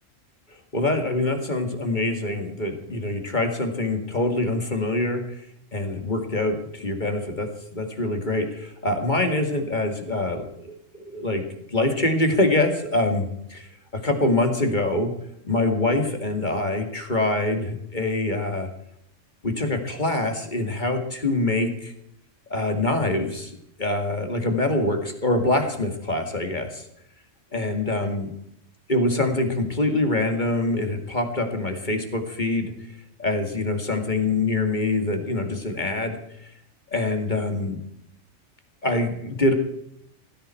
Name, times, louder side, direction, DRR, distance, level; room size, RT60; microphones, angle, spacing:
voice 1, 0.7-5.4 5.7-7.5 7.7-11.4 11.7-13.7 13.9-15.1 15.4-18.7 19.4-21.9 22.5-23.5 23.8-26.9 27.5-28.3 28.9-32.7 33.2-36.1 36.9-37.8 38.8-39.5, left 2 dB, 35° left, 5 dB, 2.3 m, -24 dB
18.0 x 16.0 x 4.5 m, 0.75 s
omnidirectional pair, 1.3 m